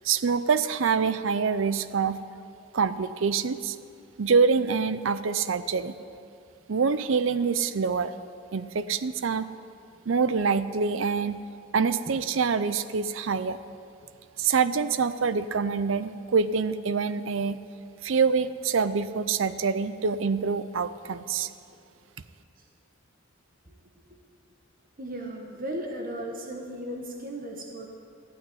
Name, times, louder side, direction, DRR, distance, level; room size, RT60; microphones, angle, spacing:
voice 1, 0.0-2.2 2.7-3.8 4.2-5.9 6.7-8.1 8.5-9.5 10.1-11.4 11.7-13.6 14.4-17.6 18.0-21.5, right 5 dB, 70° right, 13 dB, 0.5 m, -25 dB
voice 2, 25.0-27.9, right 1 dB, 45° right, 1 dB, 1.3 m, -36 dB
14.5 x 6.5 x 9.6 m, 2.6 s
head